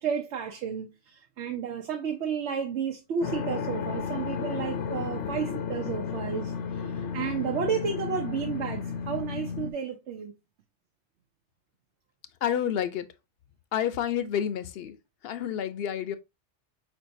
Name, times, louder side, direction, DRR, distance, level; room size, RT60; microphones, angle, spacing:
voice 1, 0.0-10.3, right 7 dB, 80° right, 1.0 m, -32 dB
sound 1, 3.2-9.7, left 6 dB, 90° left, 0.9 m, -33 dB
voice 2, 12.4-13.1 13.7-14.9 15.2-16.2, left 9 dB, 65° left, 0.7 m, -29 dB
4.5 x 4.5 x 2.6 m
omnidirectional pair, 1.2 m